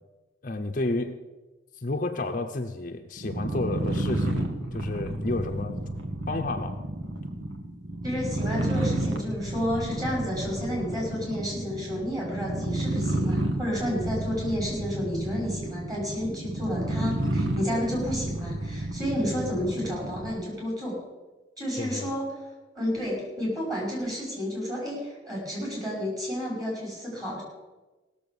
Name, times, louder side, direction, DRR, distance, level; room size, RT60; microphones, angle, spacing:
voice 1, 0.4-1.2 1.8-5.8 6.3-6.8 21.8-22.1, left 2 dB, 45° left, 5 dB, 0.7 m, -31 dB
sound 1, 3.2-20.4, right 1 dB, 80° right, 1.5 m, -31 dB
voice 2, 8.0-20.9 21.6-22.4 22.8-27.4, equal, 20° right, -3 dB, 5.6 m, -31 dB
17.0 x 7.0 x 7.0 m, 1.2 s
head